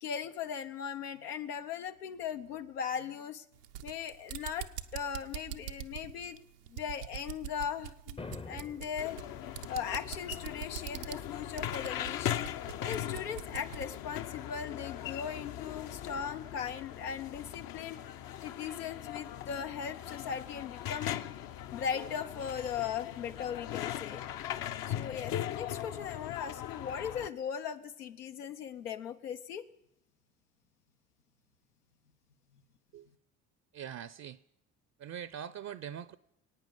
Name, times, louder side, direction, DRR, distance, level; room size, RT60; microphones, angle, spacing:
voice 1, 0.0-3.4 3.8-6.4 6.7-9.2 9.7-12.5 12.8-18.0 18.4-21.3 21.7-24.2 24.9-29.6, left 7 dB, 85° left, 0.8 m, -38 dB
sound 1, 3.5-14.0, right 12 dB, 90° right, 0.8 m, -44 dB
sound 2, 8.2-9.2, left 3 dB, 15° left, 0.6 m, -44 dB
sound 3, 9.0-27.3, left 11 dB, 50° left, 0.7 m, -39 dB
voice 2, 33.7-34.4 35.0-36.2, right 9 dB, 35° right, 0.6 m, -42 dB
23.0 x 9.1 x 5.4 m
hypercardioid pair, 55°, 45 cm